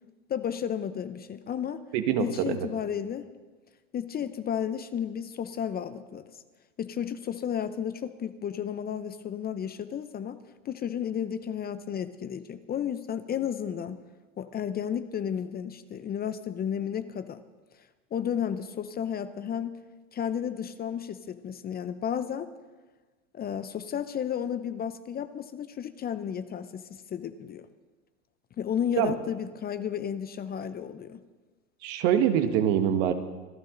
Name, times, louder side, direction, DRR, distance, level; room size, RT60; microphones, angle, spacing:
voice 1, 0.3-1.8 2.2-3.3 3.9-6.4 6.8-10.4 10.6-14.0 14.4-17.4 18.1-19.8 20.1-22.5 23.3-27.7 28.6-31.2, left 8 dB, 25° left, 12 dB, 0.7 m, -33 dB
voice 2, 1.9-2.7 29.0-29.1 31.8-33.1, right 9 dB, 55° right, 8 dB, 1.7 m, -24 dB
25.5 x 12.5 x 3.9 m, 1.3 s
hypercardioid pair, 105°, 38 cm